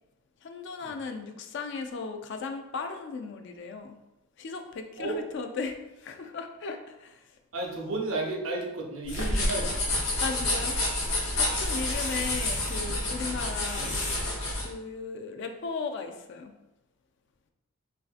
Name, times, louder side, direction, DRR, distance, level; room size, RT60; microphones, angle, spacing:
voice 1, 0.4-3.9 4.4-7.2 9.3-9.4 10.2-10.8 11.3-14.0 14.6-16.5, left 4 dB, 55° left, 6 dB, 0.3 m, -36 dB
voice 2, 7.5-9.8 11.4-11.6, right 2 dB, 70° right, 0 dB, 0.6 m, -33 dB
sound 1, 9.1-14.7, left 1 dB, 80° left, 0.7 m, -29 dB
sound 2, 9.1-9.3 10.0-11.3 11.6-12.8 13.5-14.2, left 2 dB, 35° left, 0.7 m, -39 dB
3.2 x 2.5 x 2.4 m, 0.95 s
head